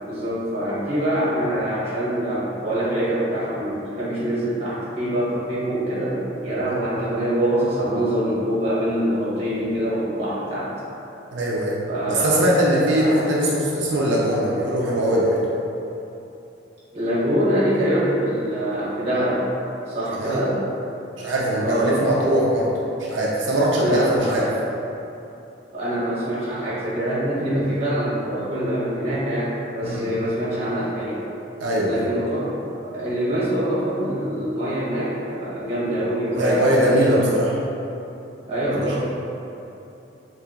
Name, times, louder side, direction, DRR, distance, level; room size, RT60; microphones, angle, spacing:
voice 1, 0.0-10.7 11.9-12.4 12.8-13.2 16.9-19.4 19.9-20.6 21.6-22.2 23.8-24.5 25.7-31.2 31.8-32.5 32.8-37.3 38.5-39.0, right 1 dB, 35° right, -9 dB, 1.1 m, -24 dB
voice 2, 11.3-11.8 12.1-15.4 20.1-20.4 21.2-22.7 23.0-24.5 29.8-30.2 31.6-32.1 36.3-37.5 38.7-38.9, equal, 85° right, -4 dB, 0.5 m, -21 dB
3.3 x 2.8 x 3.6 m, 2.9 s
head